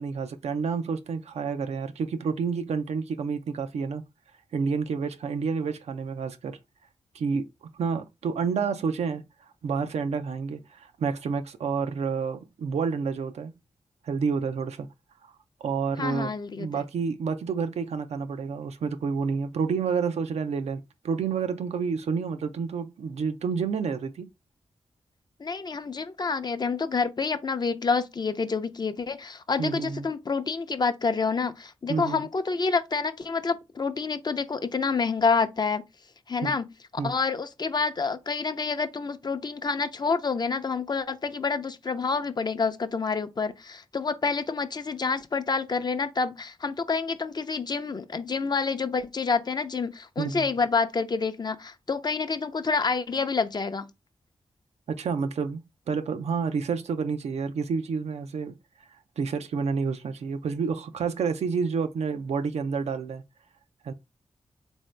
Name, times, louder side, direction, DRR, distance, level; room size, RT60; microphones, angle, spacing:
voice 1, 0.0-4.0 4.5-6.6 7.1-7.5 7.7-9.2 9.6-13.5 14.0-14.9 15.6-24.3 29.6-30.1 31.9-32.3 36.4-36.6 37.0-37.1 50.2-50.4 54.9-58.6 59.2-63.2 63.8-63.9, right 5 dB, 85° right, 0.5 m, -29 dB
voice 2, 16.0-16.7 25.4-35.8 36.3-36.7 37.0-53.9, left 4 dB, 40° left, 0.5 m, -28 dB
3.7 x 2.7 x 3.2 m
cardioid pair, 75°, 11 cm